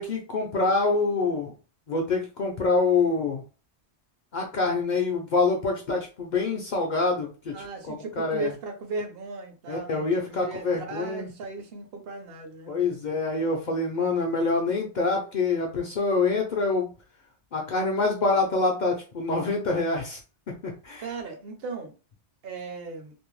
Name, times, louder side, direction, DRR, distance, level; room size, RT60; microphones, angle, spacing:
voice 1, 0.0-1.5 1.9-3.4 4.3-7.5 7.9-8.5 9.7-11.3 12.7-16.9 17.5-20.2 20.6-21.1, left 3 dB, 55° left, 0.6 m, -26 dB
voice 2, 7.5-12.7 21.0-21.9 22.4-23.1, right 3 dB, 65° right, 0.9 m, -36 dB
2.6 x 2.1 x 3.0 m
omnidirectional pair, 1.1 m